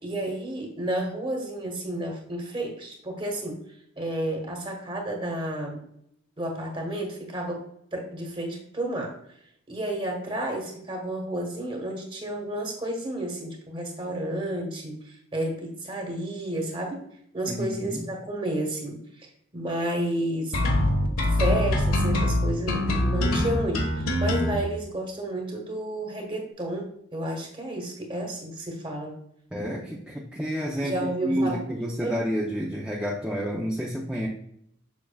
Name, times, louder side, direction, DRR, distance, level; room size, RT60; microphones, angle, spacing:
voice 1, 0.0-3.6 4.0-5.8 6.4-7.7 7.9-9.2 9.7-17.0 17.3-19.3 19.5-20.6 21.0-29.1 30.8-31.6 32.0-32.1, right 1 dB, 25° right, 1 dB, 1.3 m, -31 dB
voice 2, 17.5-18.1 29.5-34.3, equal, 5° right, -3 dB, 0.5 m, -29 dB
sound 1, 20.5-24.5, left 1 dB, 80° left, 1.4 m, -23 dB
7.0 x 5.9 x 2.3 m, 0.72 s
head